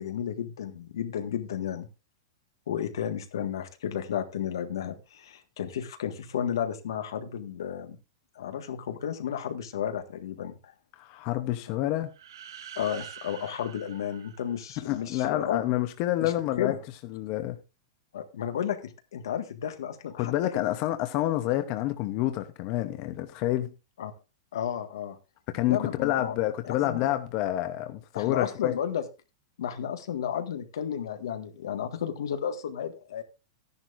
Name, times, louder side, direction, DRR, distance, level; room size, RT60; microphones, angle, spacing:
voice 1, 0.0-1.9 2.7-8.0 8.3-10.6 12.7-15.6 16.2-16.8 18.1-20.6 24.0-24.1 24.5-25.1 25.6-26.3 26.6-27.1 28.1-29.0 29.6-33.2, left 9 dB, 90° left, 1.7 m, -33 dB
voice 2, 11.0-12.1 14.8-16.7 17.1-17.6 20.2-23.7 25.5-28.7, left 14 dB, 35° left, 0.8 m, -28 dB
sound 1, 12.1-15.0, right 9 dB, 85° right, 1.1 m, -46 dB
13.5 x 10.5 x 2.6 m
supercardioid pair, 170°, 2 cm